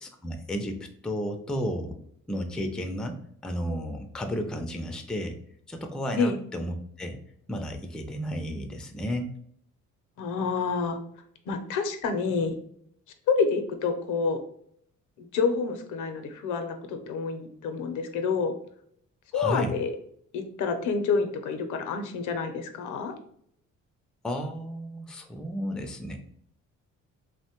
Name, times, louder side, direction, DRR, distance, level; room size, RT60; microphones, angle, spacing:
voice 1, 0.0-2.0 2.3-3.2 3.4-5.3 5.7-7.2 7.5-9.3 19.3-19.7 24.2-26.2, equal, 5° left, 5 dB, 0.3 m, -33 dB
voice 2, 10.2-11.0 11.5-12.6 13.3-14.4 15.2-18.5 19.3-19.9 20.3-23.2, left 5 dB, 80° left, 7 dB, 0.5 m, -28 dB
3.0 x 2.1 x 2.8 m, 0.66 s
cardioid pair, 90°, 30 cm